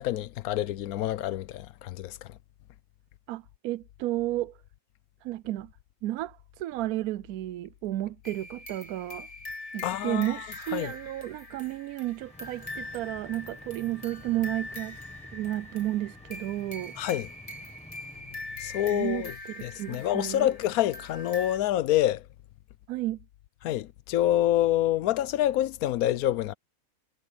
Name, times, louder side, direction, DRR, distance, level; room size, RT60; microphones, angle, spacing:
voice 1, 0.0-2.3 9.8-10.4 10.7-10.9 17.0-17.3 18.6-19.3 19.6-22.2 23.6-26.5, left 13 dB, 90° left, 1.1 m, -27 dB
voice 2, 3.3-4.6 5.2-5.7 6.0-9.3 9.7-15.0 15.3-16.9 18.9-20.5 22.9-23.2, right 15 dB, 85° right, 1.1 m, -32 dB
sound 1, 8.2-21.6, left 2 dB, 25° left, 3.1 m, -43 dB
sound 2, 12.2-19.0, left 1 dB, 5° left, 1.0 m, -51 dB
omnidirectional pair, 1.5 m